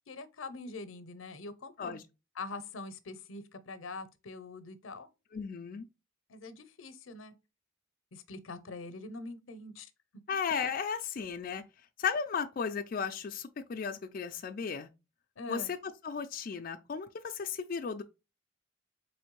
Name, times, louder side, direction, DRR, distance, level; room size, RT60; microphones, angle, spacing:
voice 1, 0.1-2.0 2.4-5.1 6.3-7.3 8.1-9.9 15.4-15.7, left 3 dB, 85° left, 0.6 m, -44 dB
voice 2, 5.3-5.9 10.3-11.6 12.0-14.9 15.5-15.8 16.0-18.0, left 6 dB, 45° left, 0.3 m, -35 dB
4.2 x 3.1 x 3.0 m
head